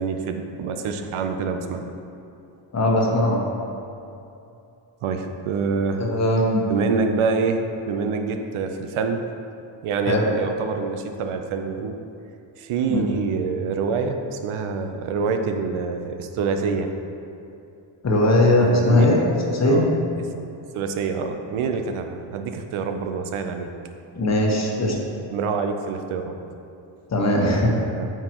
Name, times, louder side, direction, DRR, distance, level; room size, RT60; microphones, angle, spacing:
voice 1, 0.0-1.8 5.0-6.0 6.7-9.2 9.8-12.0 12.6-16.9 18.6-19.2 19.6-19.9 20.2-20.3 20.7-23.7 25.2-26.3 27.4-28.1, right 5 dB, 85° right, 6 dB, 0.8 m, -26 dB
voice 2, 2.7-3.4 6.0-6.6 10.1-10.2 12.9-13.1 18.0-19.2 19.5-19.9 24.2-25.0 27.1-27.7, left 1 dB, 35° left, -1 dB, 1.2 m, -19 dB
9.1 x 6.8 x 3.0 m, 2.7 s
cardioid pair, 135°, 48 cm